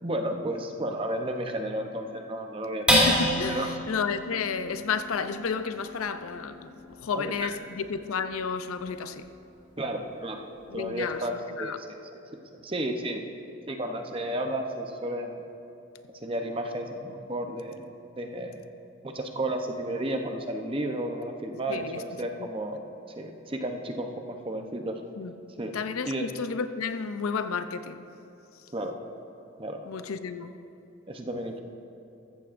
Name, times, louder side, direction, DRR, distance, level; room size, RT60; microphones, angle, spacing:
voice 1, 0.0-3.0 3.5-3.8 7.1-7.5 9.8-10.5 10.7-11.9 12.5-13.2 13.7-15.4 16.2-17.9 18.2-18.6 19.0-22.8 23.2-25.0 25.6-25.7 26.1-26.3 28.7-29.0 29.6-29.8 31.1-31.6, right 1 dB, 25° right, 4 dB, 0.7 m, -32 dB
voice 2, 2.9-9.2 10.7-11.2 11.6-11.8 21.7-22.0 25.2-25.3 25.7-28.0 29.8-30.5, left 5 dB, 80° left, 10 dB, 0.5 m, -31 dB
sound 1, 2.9-9.6 10.0-10.1 10.5-11.0, equal, 5° right, 2.2 m, -30 dB
14.5 x 14.5 x 2.6 m, 2.9 s
head